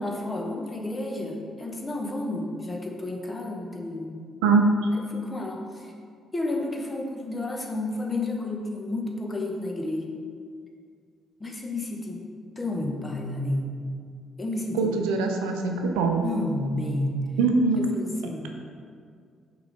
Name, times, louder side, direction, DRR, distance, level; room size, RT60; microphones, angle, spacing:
voice 1, 0.0-4.1 5.1-5.9 6.3-10.1 11.4-12.2 12.6-13.8 14.4-14.9 16.2-17.2 17.8-18.5, left 2 dB, 25° left, 1 dB, 1.0 m, -31 dB
voice 2, 4.4-4.7 14.7-16.2 17.4-17.8, right 4 dB, 70° right, 3 dB, 0.5 m, -22 dB
6.0 x 3.9 x 5.0 m, 2.2 s
figure-of-eight pair, 40°, 0 cm